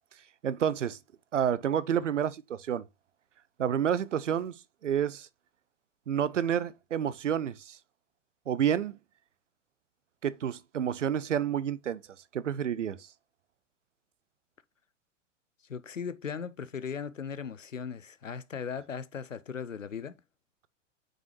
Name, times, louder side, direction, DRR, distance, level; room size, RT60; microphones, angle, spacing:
voice 1, 0.4-1.0 1.3-2.8 3.6-5.3 6.1-7.8 8.5-9.0 10.2-12.0 12.3-13.1, right 9 dB, 75° right, 0.6 m, -29 dB
voice 2, 15.7-20.2, left 6 dB, 85° left, 0.6 m, -38 dB
6.1 x 5.1 x 3.1 m
figure-of-eight pair, 95°, 38 cm